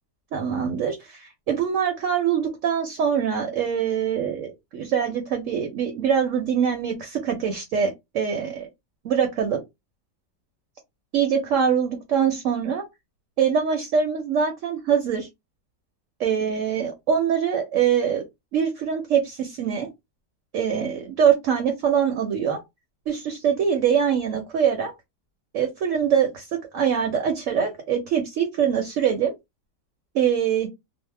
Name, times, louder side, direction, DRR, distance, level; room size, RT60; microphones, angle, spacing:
voice 1, 0.3-8.7 9.0-9.6 11.1-12.8 13.4-15.3 16.2-18.2 18.5-19.9 20.5-22.6 23.1-24.9 25.5-29.3 30.1-30.7, right 7 dB, 65° right, 0.9 m, -23 dB
2.7 x 2.0 x 3.2 m
omnidirectional pair, 1.8 m